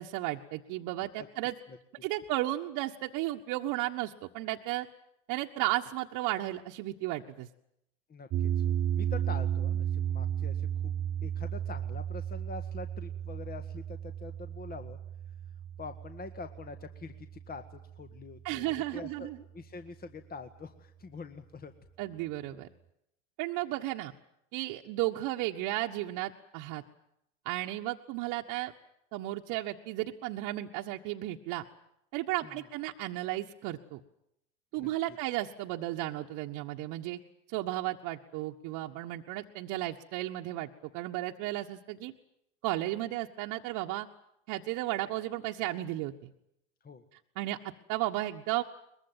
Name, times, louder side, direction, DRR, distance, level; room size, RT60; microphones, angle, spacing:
voice 1, 0.0-1.5 2.0-4.9 5.3-7.5 18.4-19.4 22.0-22.7 23.4-24.1 24.5-26.8 27.4-28.7 29.1-31.6 32.1-34.0 34.7-37.2 37.5-42.1 42.6-44.1 44.5-46.3 47.3-48.6, right 16 dB, 55° right, 1 dB, 1.5 m, -34 dB
voice 2, 8.1-11.0 11.2-15.0 15.8-17.6 18.0-18.7 18.9-21.7 32.4-32.5 34.8-34.9 46.8-47.0, left 4 dB, 25° left, 7 dB, 1.8 m, -45 dB
sound 1, 8.3-18.5, right 10 dB, 40° right, 0.9 m, -34 dB
23.0 x 21.5 x 9.0 m, 0.80 s
hypercardioid pair, 85°, 37 cm